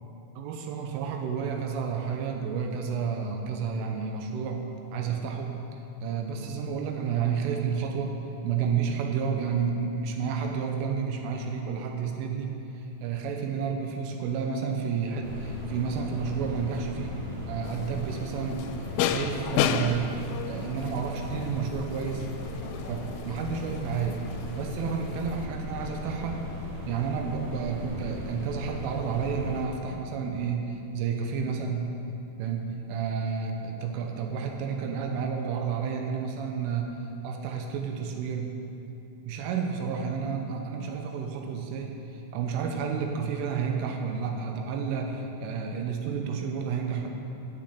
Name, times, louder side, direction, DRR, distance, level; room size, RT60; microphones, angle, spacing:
voice 1, 0.4-5.5 6.0-8.1 8.4-12.5 13.0-17.2 17.5-18.7 19.1-20.1 20.5-22.3 22.9-24.2 24.6-26.4 26.9-31.9 32.4-37.0 37.2-38.5 39.3-47.1, right 6 dB, 85° right, 3 dB, 3.4 m, -31 dB
sound 1, 15.2-29.6, left 1 dB, 35° right, 2.2 m, -38 dB
sound 2, 17.6-25.5, left 9 dB, 90° left, 3.2 m, -34 dB
9.4 x 7.7 x 8.3 m, 2.9 s
omnidirectional pair, 5.7 m